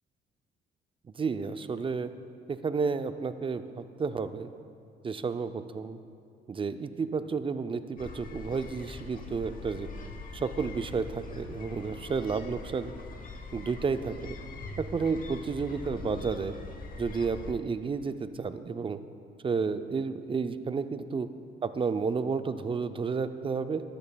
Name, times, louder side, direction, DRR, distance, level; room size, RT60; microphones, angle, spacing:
voice 1, 1.1-2.1 2.5-4.5 5.0-6.0 6.5-9.9 10.3-12.9 13.5-14.4 14.8-16.5 17.0-19.0 19.4-21.3 21.6-23.8, right 5 dB, 25° right, 11 dB, 0.4 m, -31 dB
sound 1, 8.0-17.5, left 3 dB, 45° left, 1.0 m, -43 dB
12.5 x 12.0 x 2.3 m, 2.4 s
cardioid pair, 90°, 20 cm